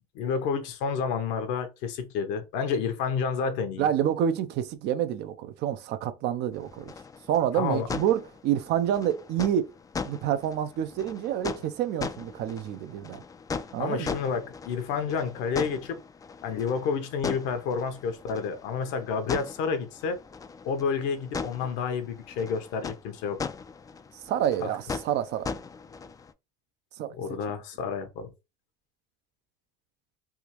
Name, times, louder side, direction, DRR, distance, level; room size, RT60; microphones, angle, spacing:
voice 1, 0.1-3.9 7.5-7.9 13.8-16.0 16.4-20.2 20.6-23.4 24.6-24.7 27.1-28.3, left 6 dB, 75° left, 0.9 m, -30 dB
voice 2, 3.8-6.9 7.3-9.7 10.1-13.2 13.7-14.1 24.3-25.5 27.0-27.1, right 10 dB, 60° right, 0.6 m, -28 dB
sound 1, 6.5-26.3, left 5 dB, 20° left, 0.3 m, -39 dB
3.5 x 2.5 x 3.0 m
supercardioid pair, 90°, 19 cm